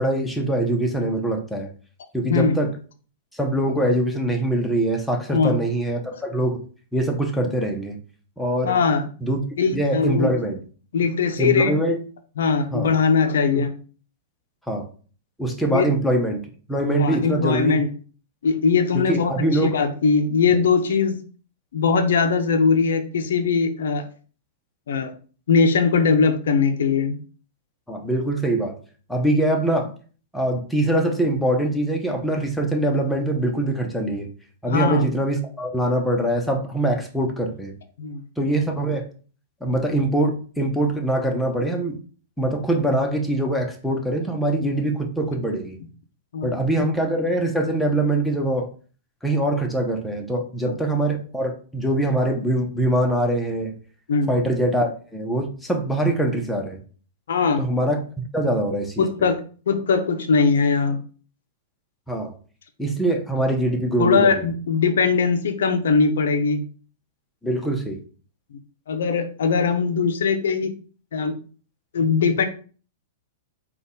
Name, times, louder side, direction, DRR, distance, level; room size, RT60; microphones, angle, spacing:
voice 1, 0.0-1.7 2.1-2.7 3.3-6.6 6.9-8.0 8.4-8.8 9.2-9.4 9.7-10.6 11.4-12.0 12.7-12.9 13.5-13.6 14.7-14.9 15.4-16.4 16.7-17.8 18.9-19.7 27.9-28.8 29.1-29.9 30.3-34.3 34.6-37.7 38.4-39.1 39.6-42.0 42.4-45.8 46.4-48.7 49.2-53.7 54.3-56.8 57.6-58.0 58.3-59.0 62.1-62.3 62.8-64.5 67.4-68.0, right 1 dB, 5° left, 1 dB, 0.9 m, -23 dB
voice 2, 8.6-9.1 9.6-10.3 10.9-11.7 12.4-13.7 15.7-15.9 17.0-17.9 18.4-21.2 21.7-24.0 24.9-25.1 25.5-27.2 34.7-35.1 38.0-38.2 46.3-46.5 46.8-46.9 54.1-54.3 57.3-57.6 59.0-59.4 59.7-61.0 64.0-66.6 68.9-70.7 71.1-71.3 71.9-72.5, left 5 dB, 75° left, 7 dB, 0.5 m, -20 dB
3.9 x 2.4 x 3.8 m, 0.39 s
hypercardioid pair, 110°, 0 cm